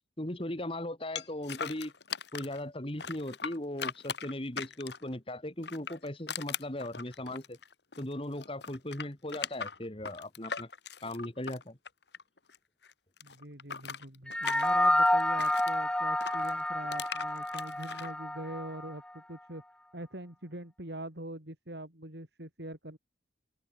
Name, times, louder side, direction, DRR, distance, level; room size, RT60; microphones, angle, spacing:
voice 1, 0.2-1.9 2.3-7.6 8.0-10.7 11.0-11.8, left 1 dB, 30° left, 2.2 m, -38 dB
sound 1, 1.2-2.6 3.0-5.1 5.6-8.1 8.4-12.6 12.8-15.7 16.2-18.1, left 6 dB, 60° left, 1.9 m, -40 dB
voice 2, 13.2-19.6 19.9-23.0, right 1 dB, 60° right, 4.3 m, -43 dB
sound 2, 14.3-18.9, left 1 dB, 5° left, 0.8 m, -29 dB
open air
head